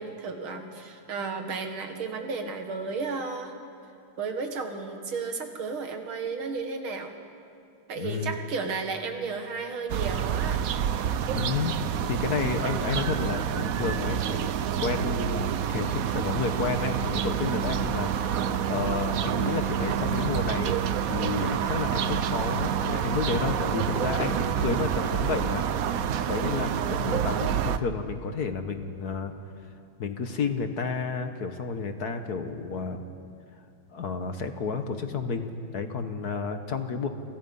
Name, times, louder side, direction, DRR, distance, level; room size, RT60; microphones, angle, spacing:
voice 1, 0.0-3.5 4.2-7.1 7.9-10.7 26.8-27.1, right 4 dB, 80° right, 5 dB, 2.7 m, -33 dB
voice 2, 8.0-8.4 11.3-11.8 12.1-25.7 26.3-29.3 30.0-33.1 33.9-37.1, left 5 dB, 55° left, 7 dB, 1.6 m, -31 dB
sound 1, 9.9-27.8, right 9 dB, 65° right, 0.9 m, -28 dB
sound 2, 19.3-24.3, left 2 dB, 30° left, 1.7 m, -41 dB
28.5 x 25.5 x 5.5 m, 2.4 s
omnidirectional pair, 2.2 m